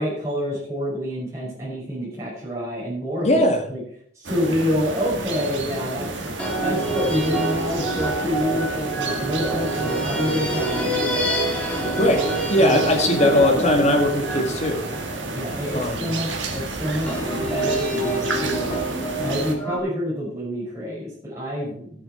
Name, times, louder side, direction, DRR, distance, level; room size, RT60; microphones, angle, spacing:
voice 1, 0.0-3.4 3.7-3.8 4.1-6.1 6.6-11.3 12.6-12.8 13.1-13.9 15.3-18.7 19.2-22.0, equal, 15° right, -7 dB, 5.5 m, -27 dB
voice 2, 3.2-3.6 12.0-14.9 15.7-16.1, left 1 dB, 35° left, 4 dB, 1.9 m, -20 dB
sound 1, 4.2-19.5, right 2 dB, 75° right, 2.1 m, -31 dB
sound 2, 4.7-5.1 6.4-16.0 17.1-19.8, right 2 dB, 5° left, 2.9 m, -27 dB
14.0 x 8.2 x 4.5 m, 0.64 s
head